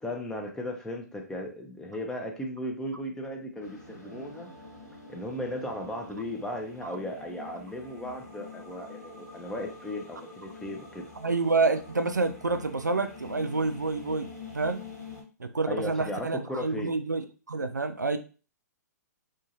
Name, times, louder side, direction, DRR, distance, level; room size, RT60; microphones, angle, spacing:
voice 1, 0.0-4.5 5.1-11.1 15.7-16.9, left 1 dB, 5° left, 0.5 m, -36 dB
sound 1, 3.6-15.2, left 3 dB, 70° left, 1.6 m, -46 dB
voice 2, 11.2-14.8 15.4-18.2, right 3 dB, 85° right, 0.4 m, -28 dB
2.9 x 2.4 x 2.6 m
figure-of-eight pair, 115°, 9 cm